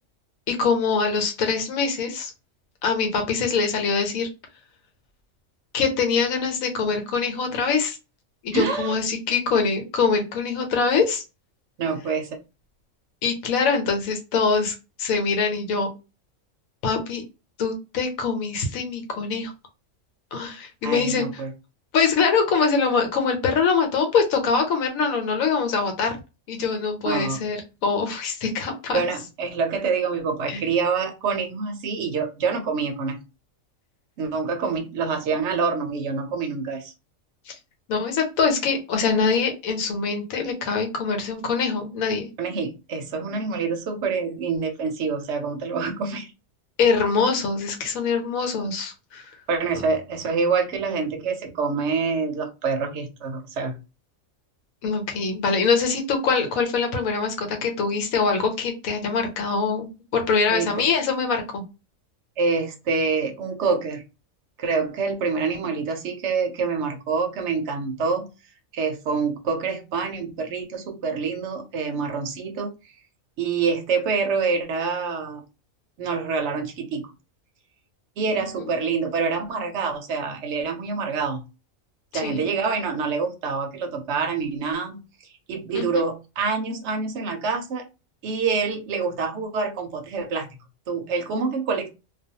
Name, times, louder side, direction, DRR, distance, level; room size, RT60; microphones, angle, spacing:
voice 1, 0.5-2.3 2.8-4.3 5.7-8.0 8.4-11.2 13.2-15.9 16.8-17.2 17.6-19.5 20.3-21.4 21.9-26.2 26.5-29.0 30.5-30.6 37.5-37.6 37.9-42.3 46.8-49.2 54.8-61.6 82.2-82.5 85.7-86.0, left 5 dB, 90° left, 4 dB, 1.1 m, -23 dB
voice 2, 8.5-8.9 11.8-12.3 20.8-21.5 27.0-27.4 28.9-33.2 34.2-36.9 42.4-46.3 49.5-53.8 60.5-60.9 62.4-64.0 64.6-68.3 68.7-72.7 73.4-75.4 76.0-77.1 78.2-81.4 82.1-85.0 85.5-87.8 88.2-90.5 90.9-91.9, right 5 dB, 65° right, 5 dB, 0.8 m, -26 dB
2.4 x 2.2 x 2.7 m, 0.28 s
omnidirectional pair, 1.4 m